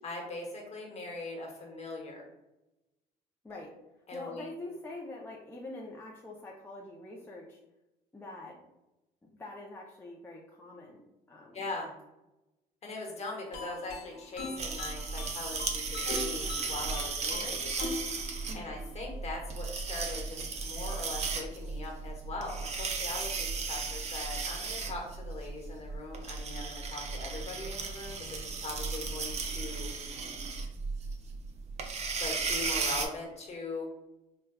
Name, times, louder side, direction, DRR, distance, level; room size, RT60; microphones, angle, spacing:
voice 1, 0.0-2.3 4.1-4.5 11.5-11.9 12.8-17.7 18.1-29.9 32.2-33.9, left 2 dB, 40° left, 0 dB, 1.0 m, -41 dB
voice 2, 4.1-7.6 8.1-8.6 9.3-11.7 17.3-17.6 18.5-18.7, left 2 dB, 15° left, -2 dB, 0.5 m, -45 dB
sound 1, 13.5-19.4, left 3 dB, 75° left, 0.7 m, -41 dB
sound 2, 14.6-33.1, right 4 dB, 40° right, 0.5 m, -35 dB
4.7 x 2.2 x 2.2 m, 0.97 s
cardioid pair, 110°, 17 cm